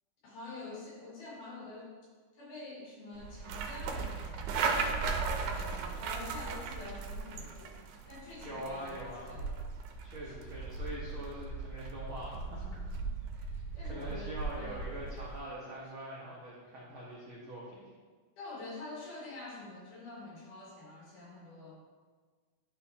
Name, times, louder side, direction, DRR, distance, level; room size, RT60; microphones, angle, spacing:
voice 1, 0.2-1.9 2.3-7.7 8.1-9.5 10.2-10.4 12.7-12.8 13.3-14.8 18.4-21.7, left 2 dB, 75° left, -6 dB, 3.2 m, -47 dB
sound 1, 3.2-15.4, right 4 dB, 85° right, 2.1 m, -37 dB
voice 2, 8.4-9.3 10.0-12.7 13.0-13.1 13.8-17.9, right 1 dB, 60° right, -6 dB, 1.3 m, -43 dB
11.0 x 4.2 x 2.8 m, 1.5 s
omnidirectional pair, 3.7 m